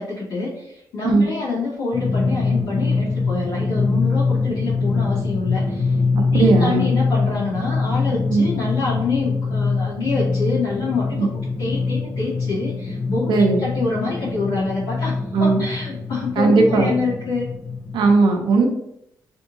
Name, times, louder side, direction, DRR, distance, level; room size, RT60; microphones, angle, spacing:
voice 1, 0.0-5.9 6.3-11.3 11.6-17.5, left 3 dB, 85° left, -11 dB, 1.5 m, -26 dB
Drum, 1.9-18.1, left 4 dB, 65° left, 1.1 m, -23 dB
voice 2, 6.2-6.9 8.3-8.4 11.2-11.3 13.3-13.6 15.3-15.6 16.4-16.9 17.9-18.7, right 3 dB, 80° right, 3 dB, 0.7 m, -17 dB
3.5 x 2.7 x 2.7 m, 0.77 s
supercardioid pair, 65°, 8 cm